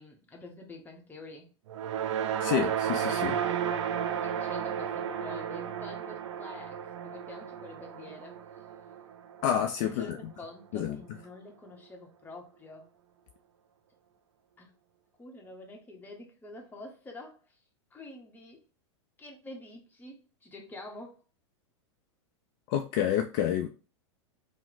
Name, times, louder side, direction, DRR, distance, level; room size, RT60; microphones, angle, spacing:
voice 1, 0.0-1.5 4.1-8.4 9.8-12.9 14.6-14.7 15.2-17.6 17.9-18.6 19.2-21.2, left 2 dB, 10° left, 0.9 m, -47 dB
sound 1, 1.7-10.1, right 8 dB, 75° right, 0.4 m, -33 dB
voice 2, 2.4-3.4 9.4-10.2 10.7-11.0 22.7-23.7, left 10 dB, 50° left, 0.4 m, -28 dB
2.8 x 2.1 x 3.9 m
hypercardioid pair, 115°, 15 cm